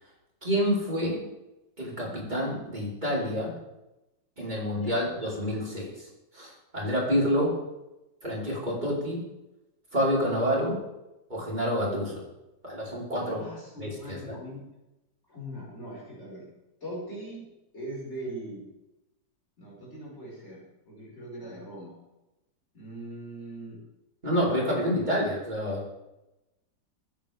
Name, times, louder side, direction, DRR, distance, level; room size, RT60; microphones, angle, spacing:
voice 1, 0.4-1.2 1.8-3.5 4.4-6.1 6.3-7.6 8.2-9.2 9.9-10.8 11.3-12.2 12.6-13.4 13.8-14.4 24.2-25.8, equal, 25° right, -5 dB, 5.3 m, -28 dB
voice 2, 4.7-5.1 13.4-14.6 15.3-16.5 16.8-17.5 17.7-18.7 19.6-22.0 22.7-23.8, right 1 dB, 40° left, -5 dB, 6.2 m, -41 dB
25.0 x 10.0 x 3.7 m, 0.96 s
omnidirectional pair, 1.9 m